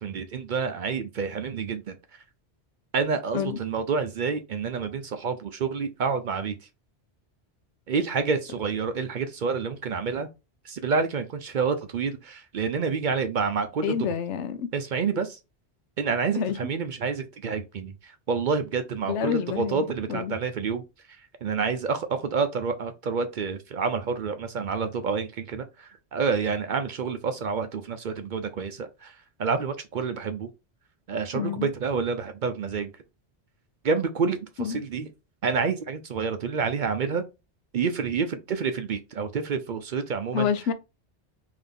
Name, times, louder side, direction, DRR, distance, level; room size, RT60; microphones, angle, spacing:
voice 1, 0.0-2.0 2.9-6.6 7.9-10.3 10.6-14.0 14.7-15.4 16.0-20.8 21.4-29.1 29.4-30.5 31.1-32.9 33.8-35.1 35.4-37.3 37.7-40.5, right 5 dB, 60° right, 0.6 m, -28 dB
voice 2, 13.8-14.7 16.4-16.6 19.1-20.4 31.3-31.7 34.6-34.8 40.3-40.7, left 7 dB, 90° left, 0.9 m, -28 dB
3.8 x 2.7 x 3.4 m
omnidirectional pair, 1.2 m